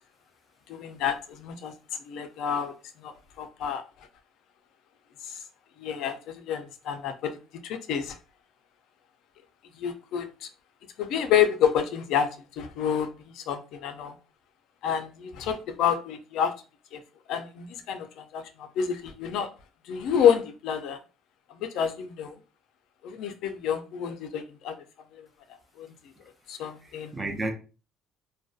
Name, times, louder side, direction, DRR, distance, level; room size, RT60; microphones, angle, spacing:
voice 1, 0.7-1.7 2.1-3.8 5.2-5.4 5.8-7.4 7.6-8.2 9.8-10.5 11.0-12.3 12.6-14.1 14.8-16.5 16.9-17.0 17.3-19.5 19.9-21.0 21.5-22.4 23.0-24.8 25.1-25.3 25.8-25.9 26.5-27.2, left 8 dB, 65° left, 0.3 m, -28 dB
voice 2, 26.6-27.5, right 2 dB, 15° right, 0.5 m, -33 dB
2.5 x 2.1 x 2.3 m
cardioid pair, 150°, 0 cm